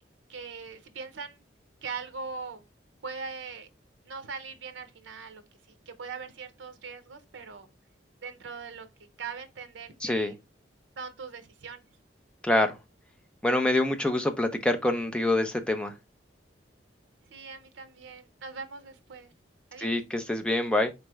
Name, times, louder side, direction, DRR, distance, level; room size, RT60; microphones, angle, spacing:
voice 1, 0.3-1.4 1.8-2.6 3.0-3.7 4.1-5.4 5.7-7.7 8.2-8.9 9.2-10.3 11.0-11.8 17.3-19.3 19.7-19.9, right 5 dB, 80° right, 0.6 m, -41 dB
voice 2, 10.0-10.3 12.4-12.8 13.4-15.9 19.8-20.9, left 1 dB, 5° left, 0.5 m, -26 dB
4.1 x 3.2 x 3.4 m
head